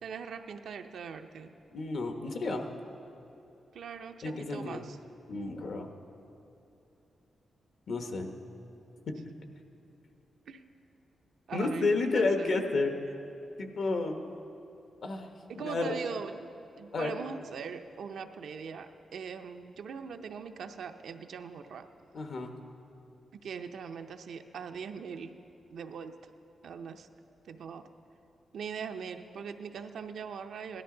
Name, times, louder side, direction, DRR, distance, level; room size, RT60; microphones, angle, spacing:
voice 1, 0.0-1.5 3.7-5.0 10.5-10.6 11.5-12.9 15.5-16.5 16.8-21.9 23.4-25.3 25.7-26.2 26.6-27.1 27.4-27.8 28.5-30.8, right 6 dB, 80° right, 6 dB, 0.6 m, -41 dB
voice 2, 1.7-2.6 4.2-4.9 5.3-5.9 7.9-8.3 9.1-9.2 11.5-12.9 13.6-14.2 15.0-15.3 15.6-15.9 16.9-17.1 22.1-22.5, left 3 dB, 65° left, 5 dB, 1.1 m, -31 dB
17.0 x 12.5 x 3.8 m, 2.8 s
cardioid pair, 95°, 0 cm